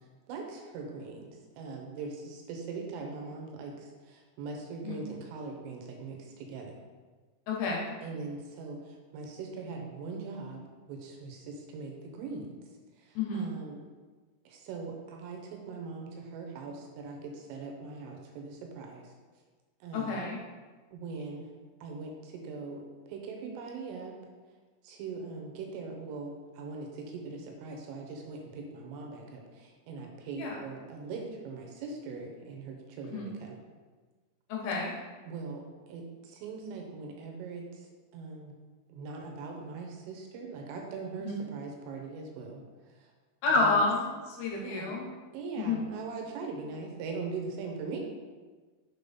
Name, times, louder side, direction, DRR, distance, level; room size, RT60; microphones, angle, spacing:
voice 1, 0.3-1.3 1.5-6.8 8.0-10.6 10.9-12.5 13.0-13.8 14.5-19.1 19.8-20.2 20.9-21.5 21.8-24.2 24.8-33.6 35.2-38.5 38.9-42.6 42.9-43.1 43.6-43.8 44.5-44.9 45.3-48.0, right 4 dB, 80° right, 1 dB, 3.4 m, -41 dB
voice 2, 7.5-7.9 13.2-13.6 19.9-20.4 30.4-30.6 33.1-33.4 34.5-35.0 41.2-41.4 43.4-45.1 45.6-45.9, left 3 dB, 75° left, -2 dB, 3.2 m, -30 dB
7.4 x 3.8 x 5.4 m, 1.4 s
omnidirectional pair, 6.0 m